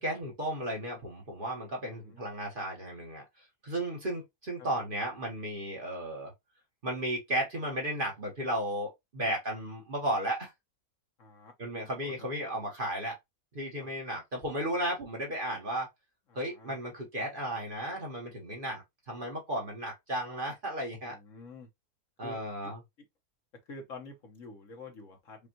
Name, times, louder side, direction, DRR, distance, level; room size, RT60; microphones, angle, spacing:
voice 1, 0.0-3.2 3.6-6.3 6.8-10.5 11.6-13.2 13.5-15.9 16.3-21.2 22.2-22.8, right 1 dB, 35° right, 1.2 m, -34 dB
voice 2, 11.2-11.5 12.0-12.1 13.8-13.9 16.3-16.7 21.0-21.7 22.2-22.7 23.7-25.5, left 3 dB, 60° left, 1.4 m, -48 dB
5.2 x 2.4 x 2.9 m
omnidirectional pair, 1.6 m